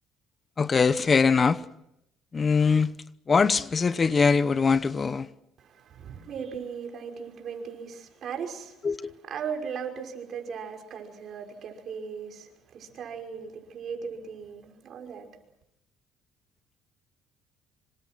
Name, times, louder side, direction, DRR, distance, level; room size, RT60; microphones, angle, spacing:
voice 1, 0.6-1.6 2.3-2.9 3.3-5.3 8.8-9.1, left 5 dB, 30° left, 0.9 m, -22 dB
voice 2, 5.6-15.3, right 6 dB, 50° right, 5.7 m, -38 dB
26.5 x 25.5 x 6.2 m
cardioid pair, 105°, 0 cm